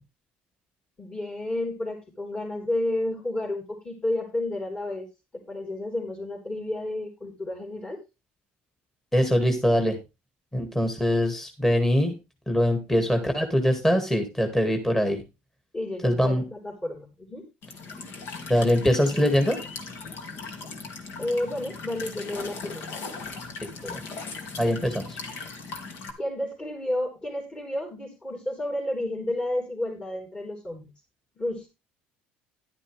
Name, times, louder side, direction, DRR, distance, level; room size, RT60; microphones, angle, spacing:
voice 1, 1.0-5.1 5.3-8.0 15.7-17.4 21.2-22.8 26.2-30.9 31.4-31.7, left 1 dB, 25° left, -3 dB, 3.8 m, -31 dB
voice 2, 9.1-10.0 10.5-12.1 12.5-15.2 16.0-16.4 18.5-19.6 23.6-24.0 24.6-25.2, equal, 10° left, 5 dB, 2.0 m, -23 dB
Walk footsteps / Chirp tweet / Stream, 17.6-26.1, left 4 dB, 65° left, 2.3 m, -38 dB
11.0 x 9.9 x 3.3 m, 0.26 s
supercardioid pair, 95°, 4 cm